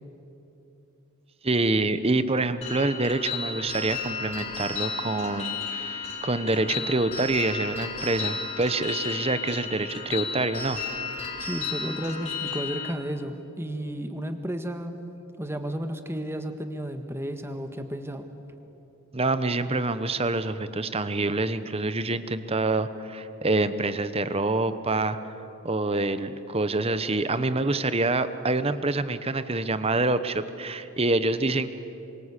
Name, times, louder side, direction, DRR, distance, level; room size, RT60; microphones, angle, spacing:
voice 1, 1.4-10.8 19.1-25.2 25.6-31.7, right 2 dB, 25° right, 12 dB, 1.0 m, -26 dB
sound 1, 2.6-12.9, left 5 dB, 30° left, 3.3 m, -33 dB
voice 2, 11.4-15.0 15.4-18.3, equal, 10° right, 7 dB, 1.6 m, -33 dB
27.0 x 24.5 x 8.3 m, 2.9 s
head